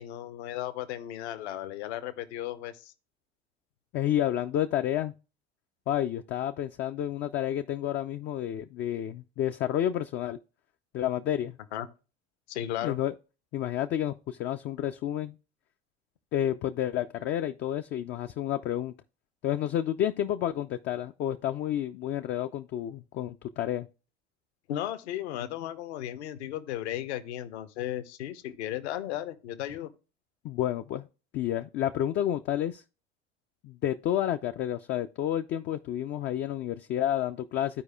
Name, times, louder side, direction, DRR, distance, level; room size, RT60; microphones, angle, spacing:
voice 1, 0.0-2.9 11.7-11.9 12.5-13.0 24.7-29.9, left 12 dB, 65° left, 0.9 m, -35 dB
voice 2, 3.9-5.1 5.9-10.4 10.9-11.6 12.8-13.1 13.5-15.3 16.3-18.9 19.4-23.9 30.4-31.1 31.3-32.8 33.6-37.8, left 11 dB, 30° left, 0.4 m, -30 dB
14.0 x 4.7 x 2.3 m
figure-of-eight pair, 75°, 35 cm